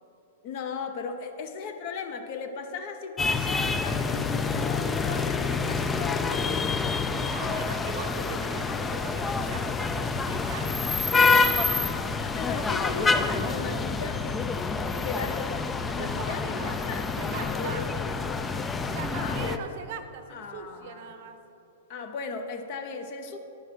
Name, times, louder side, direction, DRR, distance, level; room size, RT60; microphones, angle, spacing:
voice 1, 0.4-6.7 7.1-8.3 12.3-14.4 15.0-18.2 19.2-19.6 20.3-21.2 21.9-23.4, left 5 dB, 50° left, 6 dB, 0.7 m, -37 dB
sound 1, 3.2-19.6, left 4 dB, 15° left, 0.3 m, -27 dB
voice 2, 7.2-12.0 16.0-16.8 17.2-17.9 18.9-21.4, right 7 dB, 60° right, 8 dB, 0.7 m, -41 dB
10.5 x 4.7 x 4.4 m, 2.9 s
hypercardioid pair, 125°, 0 cm